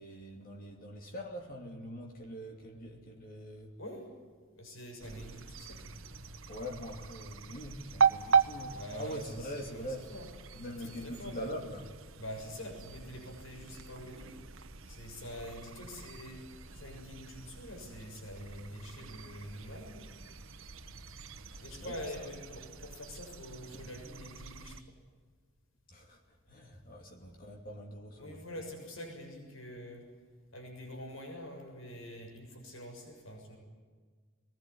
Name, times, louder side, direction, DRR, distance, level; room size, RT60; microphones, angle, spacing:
voice 1, 0.0-3.7 6.5-10.1 10.5-12.0 21.5-22.3 23.7-23.8 25.9-28.4, equal, 45° left, 2 dB, 2.7 m, -43 dB
voice 2, 3.8-4.1 4.5-5.8 8.7-10.3 10.6-11.5 12.2-14.3 14.9-20.1 21.6-24.9 28.2-30.0 30.5-33.6, equal, 75° left, 3 dB, 6.8 m, -45 dB
sound 1, 5.0-24.8, right 6 dB, 75° right, 1.3 m, -38 dB
22.5 x 20.5 x 9.9 m, 1.6 s
head